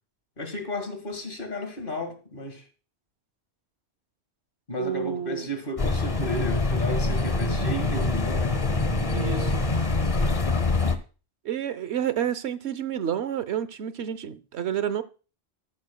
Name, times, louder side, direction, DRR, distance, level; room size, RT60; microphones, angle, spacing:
voice 1, 0.4-2.6 4.7-8.6, left 1 dB, 55° left, 2.1 m, -33 dB
voice 2, 4.8-5.5 9.1-9.6 11.4-15.0, right 9 dB, 90° right, 1.1 m, -29 dB
sound 1, 5.8-11.0, left 3 dB, 35° left, 1.0 m, -25 dB
13.0 x 12.0 x 2.2 m
omnidirectional pair, 1.1 m